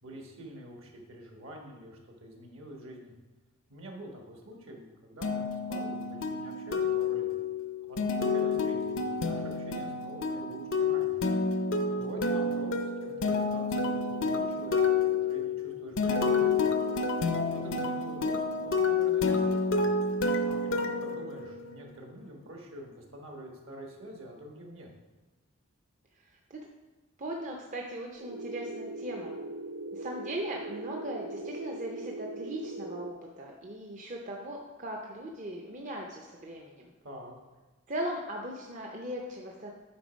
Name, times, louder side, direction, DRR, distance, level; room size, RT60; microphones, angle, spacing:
voice 1, 0.0-3.1 3.7-7.3 7.9-11.2 11.9-16.6 17.5-19.8 20.4-24.9 37.0-37.3, equal, 65° right, 0 dB, 1.4 m, -46 dB
sound 1, 5.2-21.9, left 4 dB, 60° left, 0.6 m, -29 dB
voice 2, 26.2-26.6 27.2-29.3 29.9-36.9 37.9-39.7, right 1 dB, 35° right, 0 dB, 0.6 m, -38 dB
sound 2, 28.2-33.1, right 2 dB, 85° right, 0.4 m, -40 dB
8.8 x 3.8 x 5.2 m, 1.2 s
head